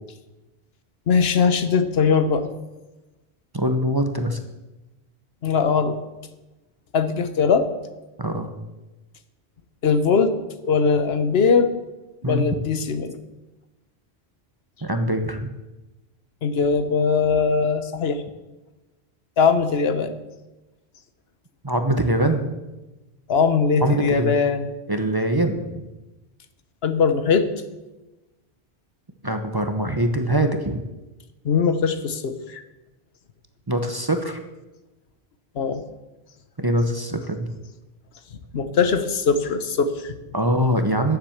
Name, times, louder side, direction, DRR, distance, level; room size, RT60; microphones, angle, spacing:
voice 1, 1.1-2.5 5.4-6.0 6.9-7.7 9.8-10.3 10.6-11.7 12.2-13.2 16.4-18.2 19.4-20.1 23.3-24.7 26.8-27.5 31.4-32.6 35.6-35.8 38.5-40.1, left 5 dB, 70° left, 10 dB, 1.1 m, -20 dB
voice 2, 3.5-4.4 8.2-8.5 12.2-12.5 14.8-15.5 21.6-22.4 23.8-24.4 24.9-25.8 29.2-30.8 33.7-34.4 36.6-37.5 40.3-41.2, right 1 dB, 25° right, 5 dB, 0.8 m, -23 dB
10.5 x 7.4 x 7.2 m, 1.1 s
omnidirectional pair, 1.1 m